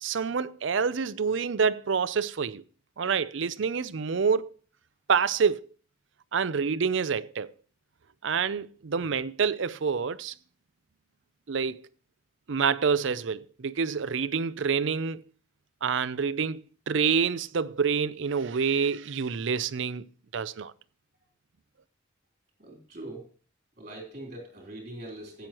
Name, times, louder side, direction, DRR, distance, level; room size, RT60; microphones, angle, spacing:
voice 1, 0.0-2.6 3.0-4.5 5.1-5.6 6.3-7.5 8.2-10.3 11.5-11.9 12.5-15.2 15.8-20.1 20.3-20.7, right 6 dB, 70° right, 0.5 m, -27 dB
voice 2, 22.6-23.3 23.8-25.5, right 1 dB, 40° right, 3.7 m, -42 dB
15.5 x 9.1 x 3.0 m
head